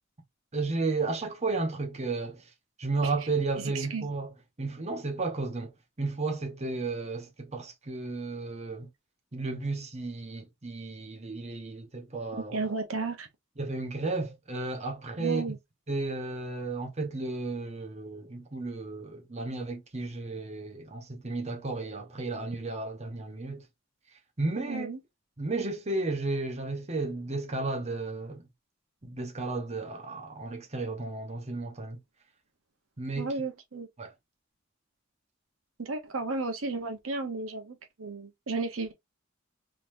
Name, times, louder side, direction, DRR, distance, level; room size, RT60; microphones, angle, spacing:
voice 1, 0.5-2.4 2.8-4.3 4.6-5.7 6.0-8.9 9.3-12.7 13.6-15.5 15.9-23.6 24.4-24.9 25.4-28.5 29.0-32.0 33.0-33.3 34.0-34.1, right 3 dB, 35° right, 1.0 m, -33 dB
voice 2, 3.7-4.1 12.5-13.3 15.2-15.6 24.7-25.0 33.2-33.9 35.8-38.9, right 3 dB, 80° right, 0.9 m, -33 dB
3.9 x 3.2 x 2.6 m
head